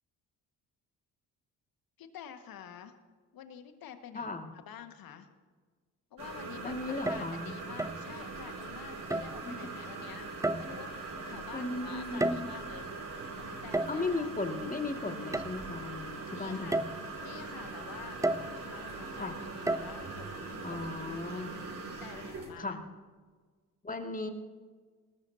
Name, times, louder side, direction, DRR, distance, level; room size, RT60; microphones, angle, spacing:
voice 1, 2.0-3.0 3.3-4.4 4.6-5.3 6.1-6.8 7.1-10.3 10.6-10.9 11.2-12.9 13.3-14.3 16.3-16.8 17.2-21.0 21.2-21.4 21.9-22.8, left 9 dB, 50° left, 8 dB, 1.8 m, -49 dB
voice 2, 4.1-4.5 6.6-7.5 9.4-9.8 11.5-12.5 13.9-16.8 19.2-19.4 20.6-21.5 22.6-22.8 23.8-24.3, left 3 dB, 15° left, 4 dB, 2.2 m, -36 dB
sound 1, 6.2-22.5, right 3 dB, 45° right, 5.9 m, -42 dB
sound 2, 6.9-7.4 7.8-8.1 9.1-9.4 10.4-10.9 12.0-12.7 13.7-14.1 15.3-15.5 16.0-16.1 16.7-17.0 18.2-18.6 19.7-19.9, right 2 dB, 5° right, 0.7 m, -32 dB
24.5 x 19.5 x 2.9 m, 1.4 s
figure-of-eight pair, 50°, 46 cm